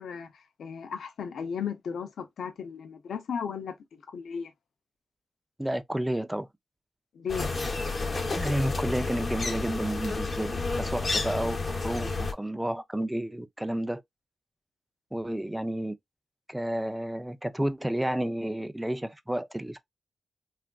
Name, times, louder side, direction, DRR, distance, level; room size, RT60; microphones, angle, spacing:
voice 1, 0.0-4.5 7.1-7.5, left 7 dB, 80° left, 0.6 m, -35 dB
voice 2, 5.6-6.5 8.4-14.0 15.1-15.9 16.5-19.8, right 1 dB, 5° right, 0.3 m, -31 dB
sound 1, 7.3-12.3, left 3 dB, 40° left, 0.8 m, -30 dB
3.4 x 2.4 x 2.3 m
wide cardioid pair, 100°, 0 cm